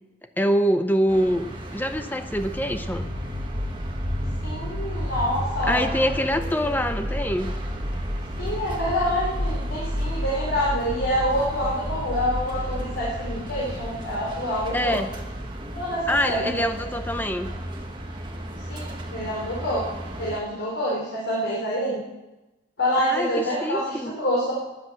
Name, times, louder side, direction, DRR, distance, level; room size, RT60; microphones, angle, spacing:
voice 1, 0.4-1.5 1.7-3.1 5.6-7.6 14.7-15.1 16.1-17.5 23.0-24.1, equal, 10° left, 8 dB, 0.7 m, -25 dB
sound 1, 1.1-20.4, right 1 dB, 25° right, 1.6 m, -37 dB
sound 2, 2.3-19.3, equal, 45° right, 3.3 m, -32 dB
voice 2, 4.4-5.9 8.4-15.0 15.7-16.6 17.5-17.6 18.7-19.8 20.2-22.0 22.8-24.5, equal, 80° left, -6 dB, 3.8 m, -27 dB
13.5 x 10.5 x 7.7 m, 1.1 s
head